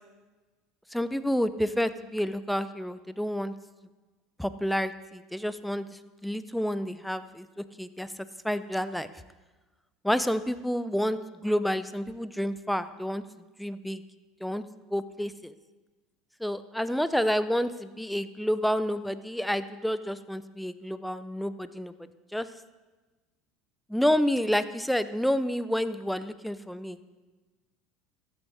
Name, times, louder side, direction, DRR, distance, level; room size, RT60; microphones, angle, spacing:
voice 1, 0.9-3.5 4.4-8.1 8.4-9.1 10.0-13.2 13.6-14.0 14.4-14.6 14.9-15.5 16.4-21.9 22.3-22.5 23.9-27.0, equal, ahead, 13 dB, 0.7 m, -29 dB
13.5 x 8.0 x 6.4 m, 1.2 s
hypercardioid pair, 90°, 0 cm